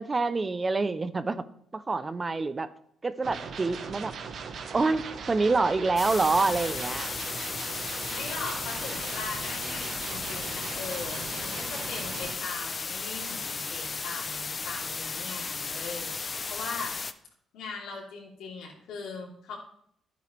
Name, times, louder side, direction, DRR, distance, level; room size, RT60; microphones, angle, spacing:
voice 1, 0.0-1.4 1.7-2.7 3.0-4.1 4.7-7.1, right 3 dB, 30° right, 13 dB, 0.6 m, -27 dB
sound 1, 3.2-12.4, right 5 dB, 60° right, 1.2 m, -39 dB
sound 2, 6.0-17.1, left 4 dB, 35° left, 0.6 m, -35 dB
voice 2, 8.1-17.0 17.5-19.6, left 4 dB, 85° left, -2 dB, 3.3 m, -40 dB
12.0 x 9.0 x 3.4 m, 0.68 s
cardioid pair, 90°, 0 cm